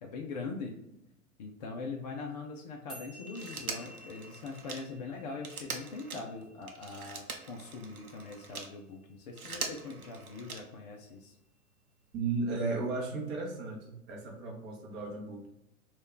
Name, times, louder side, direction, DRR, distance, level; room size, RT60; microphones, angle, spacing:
voice 1, 0.0-0.7 1.4-11.4, left 4 dB, 30° left, 0 dB, 0.4 m, -42 dB
sound 1, 2.9-9.5, left 1 dB, ahead, 1.1 m, -54 dB
Telephone, 3.3-8.7 9.2-10.9 12.2-12.3, right 4 dB, 85° right, 0.7 m, -43 dB
voice 2, 12.1-15.5, right 3 dB, 25° right, 0 dB, 0.8 m, -35 dB
3.0 x 2.3 x 3.7 m, 0.88 s
figure-of-eight pair, 100°, 42 cm